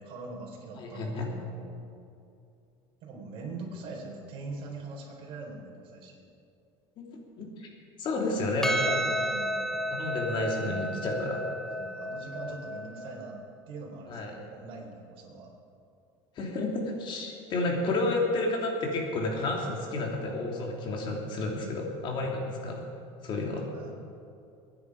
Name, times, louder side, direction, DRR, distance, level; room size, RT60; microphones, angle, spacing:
voice 1, 0.0-1.8 3.0-6.2 8.9-9.9 11.7-13.4 13.7-15.5 23.7-23.9, right 3 dB, 50° right, -1 dB, 4.3 m, -42 dB
voice 2, 0.7-1.3 7.4-7.7 8.0-9.0 9.9-11.4 14.1-14.3 16.4-22.8 23.2-23.7, left 2 dB, 40° left, 0 dB, 3.2 m, -31 dB
Percussion, 8.6-13.3, equal, 5° left, 0.9 m, -32 dB
24.0 x 10.0 x 5.0 m, 2.6 s
cardioid pair, 145°, 12 cm